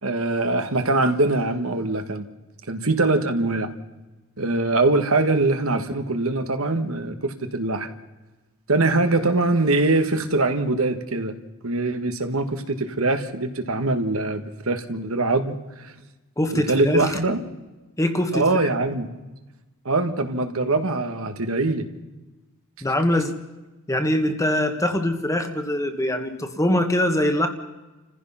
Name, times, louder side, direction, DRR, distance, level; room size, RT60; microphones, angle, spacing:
voice 1, 0.0-2.2 2.7-3.7 4.4-7.9 8.7-11.3 11.6-15.9 16.5-17.4 18.3-19.1 19.8-21.9, right 2 dB, 70° right, 7 dB, 1.6 m, -23 dB
voice 2, 16.4-17.1 18.0-18.7 22.8-23.3 23.9-27.5, left 1 dB, 15° left, 6 dB, 1.6 m, -23 dB
29.5 x 15.5 x 5.8 m, 1.1 s
head